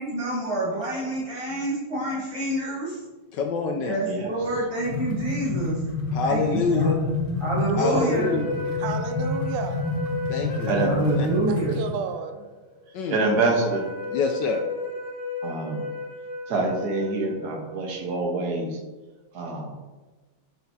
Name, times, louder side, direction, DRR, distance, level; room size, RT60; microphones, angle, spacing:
voice 1, 0.0-3.0 3.9-5.8 6.2-6.9 7.4-8.3 10.8-11.8, right 1 dB, 25° right, -8 dB, 0.8 m, -27 dB
voice 2, 3.3-4.0 6.1-7.0 7.8-8.5 10.3-10.9 11.2-11.3 12.9-13.2 14.1-14.6, left 5 dB, 75° left, 4 dB, 1.0 m, -26 dB
sound 1, 4.4-11.9, left 2 dB, 30° left, 1.4 m, -28 dB
sound 2, 7.7-18.1, left 4 dB, 55° left, 2.3 m, -34 dB
voice 3, 7.8-8.5 10.7-11.0 13.1-13.9 15.4-15.8 16.5-18.8 19.3-19.8, right 3 dB, 55° right, 1 dB, 1.4 m, -26 dB
voice 4, 8.8-9.9 11.5-12.4, right 7 dB, 90° right, 8 dB, 1.5 m, -32 dB
6.6 x 6.5 x 2.7 m, 1.2 s
omnidirectional pair, 2.4 m